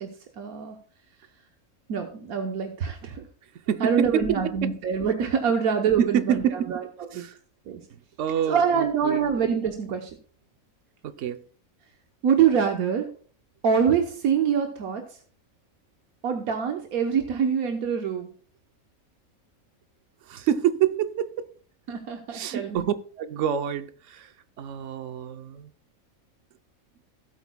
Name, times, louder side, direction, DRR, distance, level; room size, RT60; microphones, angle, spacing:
voice 1, 0.4-0.8 1.9-3.3 3.8-6.4 6.7-6.8 7.1-7.2 7.7-7.8 8.5-10.1 12.2-13.1 13.6-15.0 16.2-18.3 21.9-22.9, right 7 dB, 85° right, 1.4 m, -25 dB
voice 2, 3.7-4.3 4.6-4.7 6.0-6.8 7.1-7.4 8.2-9.3 11.0-11.4 20.2-21.5 22.3-25.7, right 9 dB, 65° right, 1.0 m, -27 dB
16.5 x 8.2 x 2.2 m
omnidirectional pair, 1.5 m